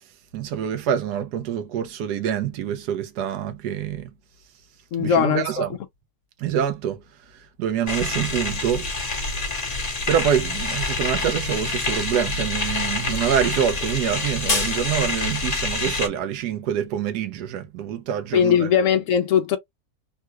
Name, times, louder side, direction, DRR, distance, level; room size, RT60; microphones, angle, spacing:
voice 1, 0.3-4.1 5.0-5.8 6.4-7.0 7.3-8.9 10.1-18.7, right 9 dB, 85° right, 1.3 m, -26 dB
voice 2, 4.9-5.6 18.3-19.6, left 8 dB, 70° left, 0.8 m, -20 dB
sound 1, 7.9-16.1, left 3 dB, 30° left, 0.9 m, -26 dB
3.6 x 2.3 x 2.8 m
omnidirectional pair, 1.7 m